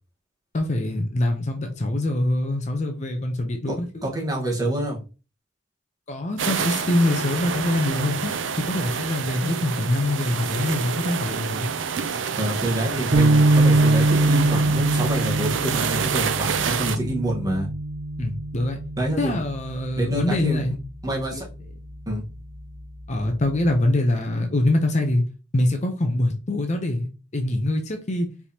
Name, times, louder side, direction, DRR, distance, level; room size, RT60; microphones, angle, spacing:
voice 1, 0.5-4.1 6.1-8.3 8.6-11.7 18.2-18.8 19.2-20.8 21.3-21.4 23.1-25.2 25.5-27.1 27.3-28.3, left 1 dB, 35° left, 0.7 m, -24 dB
voice 2, 4.0-5.0 12.4-17.7 19.0-19.4 20.0-20.6 21.0-21.5 22.1-22.2, right 1 dB, 20° right, 1.3 m, -26 dB
sound 1, 6.4-17.0, right 6 dB, 70° right, 0.5 m, -28 dB
sound 2, 13.1-19.5, right 2 dB, 50° right, 1.0 m, -22 dB
4.6 x 3.4 x 2.8 m
head